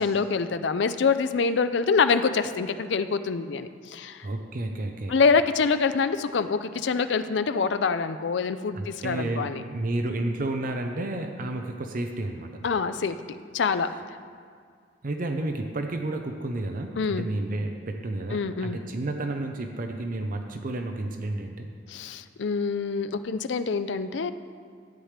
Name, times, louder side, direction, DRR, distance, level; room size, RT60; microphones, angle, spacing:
voice 1, 0.0-4.3 5.1-9.6 12.6-13.2 13.5-13.9 17.0-17.3 18.3-18.8 21.9-24.3, left 5 dB, 70° left, 11 dB, 0.5 m, -25 dB
voice 2, 3.9-5.2 8.7-12.6 15.0-21.7, right 2 dB, 50° right, 4 dB, 0.6 m, -31 dB
13.0 x 8.8 x 3.3 m, 2.1 s
head